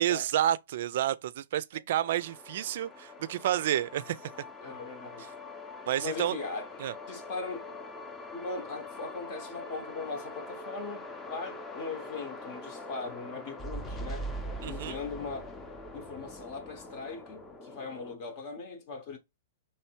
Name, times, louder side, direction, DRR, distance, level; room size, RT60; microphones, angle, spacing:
voice 1, 0.0-4.2 5.9-6.4 6.8-6.9 14.6-15.0, right 12 dB, 55° right, 0.4 m, -29 dB
sound 1, 2.0-18.2, left 1 dB, 15° left, 0.6 m, -43 dB
voice 2, 4.6-5.3 6.0-6.7 7.1-7.8 8.3-14.3 14.7-15.5 15.9-19.2, left 4 dB, 40° left, 0.8 m, -39 dB
3.3 x 3.1 x 4.4 m
hypercardioid pair, 155°, 0 cm